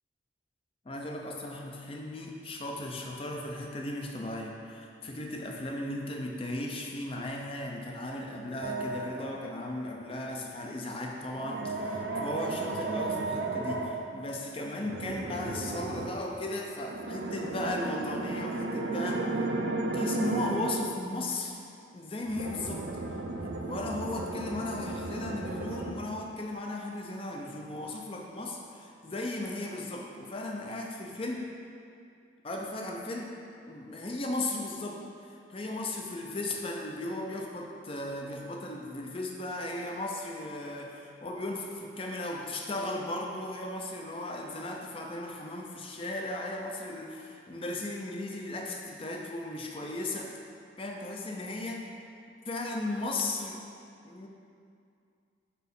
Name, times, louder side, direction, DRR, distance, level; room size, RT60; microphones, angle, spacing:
voice 1, 0.8-19.5 19.9-21.6 21.9-22.8 23.4-31.5 32.4-33.3 33.7-50.3 50.8-51.8 52.5-53.6 54.0-54.3, left 2 dB, 30° left, 0 dB, 0.5 m, -36 dB
sound 1, 8.6-9.5 11.3-14.0 14.8-16.2 16.8-20.9 22.3-25.9, right 2 dB, 65° right, 0.5 m, -34 dB
5.5 x 4.2 x 5.4 m, 2.4 s
head